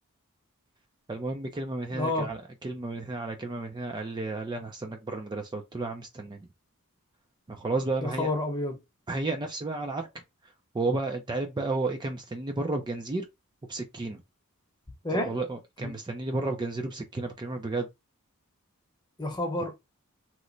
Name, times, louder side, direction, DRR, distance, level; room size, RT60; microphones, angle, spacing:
voice 1, 1.1-6.5 7.5-8.3 9.1-10.1 10.7-13.3 13.7-14.2 15.1-17.9, right 2 dB, 20° right, 0.4 m, -32 dB
voice 2, 1.9-2.3 8.0-8.8 15.0-15.4 15.8-15.9 19.2-19.7, left 1 dB, 20° left, 0.8 m, -29 dB
3.0 x 2.1 x 3.8 m
head